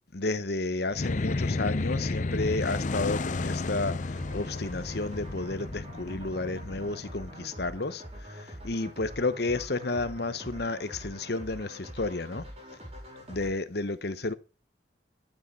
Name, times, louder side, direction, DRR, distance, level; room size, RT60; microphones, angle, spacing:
voice 1, 0.1-12.4 13.3-14.3, left 2 dB, 55° left, 1.0 m, -32 dB
sound 1, 0.9-7.5, left 3 dB, 40° left, 0.6 m, -32 dB
sound 2, 4.2-13.5, equal, 35° right, 4.8 m, -44 dB
12.0 x 7.6 x 5.5 m
head